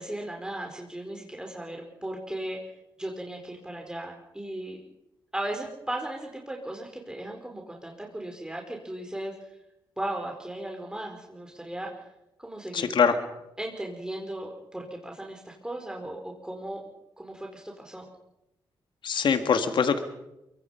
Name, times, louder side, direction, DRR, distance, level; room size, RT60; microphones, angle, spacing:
voice 1, 0.0-2.6 3.0-4.8 5.3-9.6 10.0-11.9 12.4-12.9 13.6-16.8 17.2-18.0, right 1 dB, 10° right, 1 dB, 4.5 m, -36 dB
voice 2, 12.7-13.2 19.0-20.0, left 6 dB, 70° left, 8 dB, 1.9 m, -23 dB
24.0 x 23.5 x 5.8 m, 0.90 s
cardioid pair, 75°, 9 cm